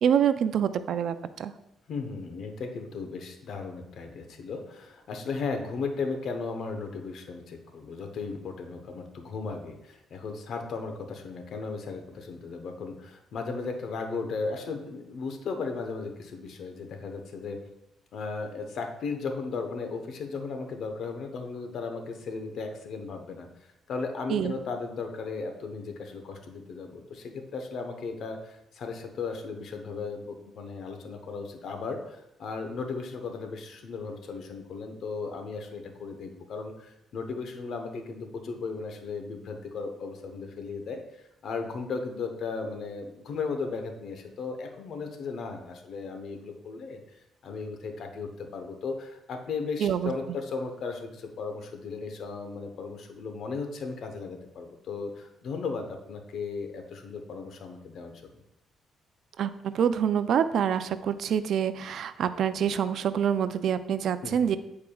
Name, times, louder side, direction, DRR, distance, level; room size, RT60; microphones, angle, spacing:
voice 1, 0.0-1.5 24.3-24.6 49.8-50.1 59.4-64.6, right 8 dB, 70° right, 12 dB, 0.4 m, -26 dB
voice 2, 1.9-17.6 18.1-23.5 23.9-41.0 41.4-47.0 47.4-58.1 64.2-64.6, left 4 dB, 65° left, 5 dB, 0.9 m, -36 dB
8.6 x 4.7 x 2.3 m, 0.84 s
cardioid pair, 90°, 0 cm